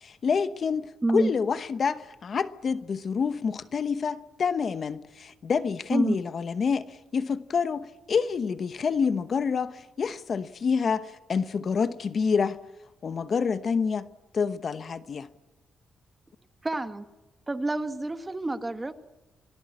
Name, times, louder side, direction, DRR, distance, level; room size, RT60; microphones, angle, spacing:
voice 1, 0.0-0.9 1.1-6.9 7.1-12.6 13.0-14.1 14.3-15.3, left 5 dB, 45° left, 1.0 m, -27 dB
voice 2, 16.6-17.0 17.5-18.9, right 2 dB, 15° right, 1.5 m, -28 dB
26.5 x 18.0 x 9.8 m
cardioid pair, 135°, 0 cm